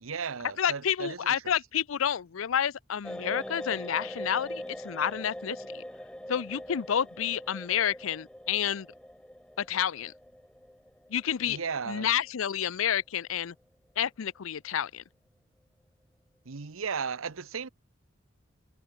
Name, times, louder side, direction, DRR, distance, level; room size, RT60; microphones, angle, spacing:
voice 1, 0.0-1.5 11.4-12.1 16.4-17.7, right 5 dB, 85° right, 0.9 m, -35 dB
voice 2, 0.6-5.8 6.3-8.9 9.6-10.1 11.1-11.6 11.9-13.5 14.0-15.0, left 9 dB, 80° left, 0.5 m, -29 dB
sound 1, 3.0-13.0 13.2-13.4, equal, 5° left, 1.0 m, -42 dB
head